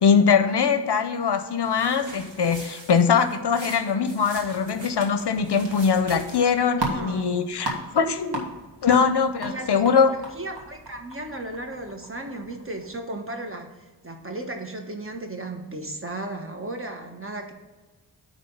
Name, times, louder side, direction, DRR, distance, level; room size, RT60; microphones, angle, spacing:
voice 1, 0.0-8.4 8.8-10.1, left 6 dB, 60° left, 9 dB, 0.7 m, -22 dB
sound 1, 1.6-6.6, right 2 dB, 70° right, 1.7 m, -43 dB
voice 2, 3.8-4.2 6.7-7.3 9.4-10.1 10.3-13.7 14.0-17.5, right 2 dB, 30° right, 4 dB, 1.2 m, -35 dB
sound 2, 6.2-12.9, right 2 dB, 55° right, 1.8 m, -36 dB
9.5 x 3.7 x 5.4 m, 1.2 s
wide cardioid pair, 90°, 46 cm